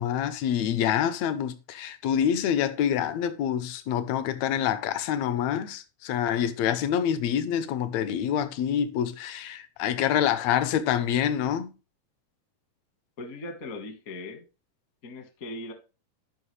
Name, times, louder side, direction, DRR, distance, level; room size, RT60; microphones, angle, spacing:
voice 1, 0.0-11.7, left 9 dB, 80° left, 1.5 m, -26 dB
voice 2, 13.2-14.4 15.0-15.7, left 2 dB, 60° left, 0.9 m, -39 dB
13.0 x 5.6 x 3.2 m
omnidirectional pair, 3.9 m